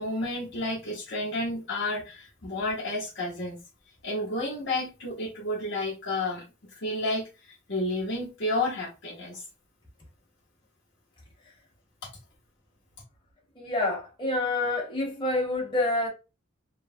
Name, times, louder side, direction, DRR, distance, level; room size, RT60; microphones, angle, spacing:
voice 1, 0.0-3.6 4.0-6.4 6.8-9.4, left 2 dB, 60° left, 0.9 m, -31 dB
voice 2, 13.6-16.1, left 2 dB, 25° left, 1.0 m, -27 dB
3.2 x 2.1 x 2.5 m
head